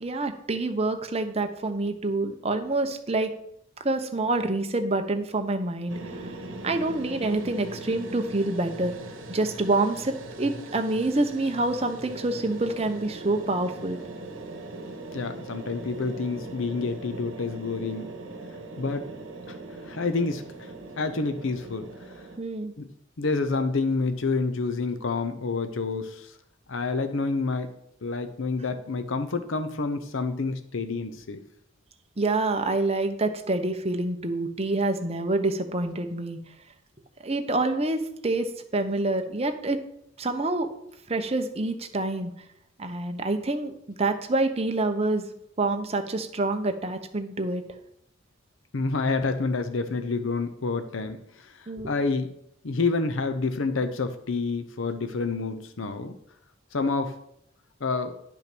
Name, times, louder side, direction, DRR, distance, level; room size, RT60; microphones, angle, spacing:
voice 1, 0.0-3.3 3.8-6.3 6.6-9.0 9.3-14.0 22.4-22.7 32.2-36.4 37.2-39.8 40.2-40.7 41.1-42.3 42.8-43.7 44.0-45.2 45.6-47.6 51.7-51.9, right 2 dB, 30° right, 6 dB, 0.9 m, -27 dB
sound 1, 5.9-22.4, right 2 dB, 65° right, 1.4 m, -40 dB
voice 2, 15.1-18.1 18.8-19.1 19.5-19.6 19.8-22.2 22.8-22.9 23.2-26.4 26.7-27.7 28.0-31.4 48.7-52.3 52.6-56.2 56.7-57.2 57.8-58.1, left 3 dB, 70° left, 8 dB, 0.7 m, -28 dB
10.5 x 5.7 x 6.1 m, 0.75 s
head